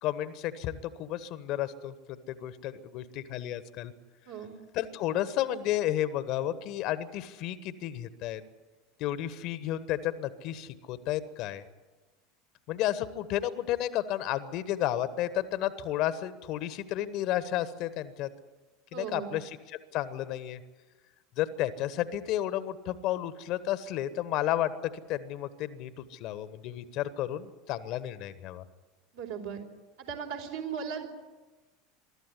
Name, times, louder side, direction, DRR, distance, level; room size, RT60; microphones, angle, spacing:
voice 1, 0.0-1.9 2.3-3.9 4.7-8.4 9.0-11.6 12.7-18.3 18.9-20.6 21.4-28.6, left 12 dB, 50° left, 14 dB, 1.3 m, -32 dB
voice 2, 18.9-19.3 29.1-29.6 30.0-31.1, right 7 dB, 65° right, 1 dB, 4.1 m, -37 dB
23.0 x 13.5 x 9.8 m, 1.2 s
figure-of-eight pair, 75°, 0 cm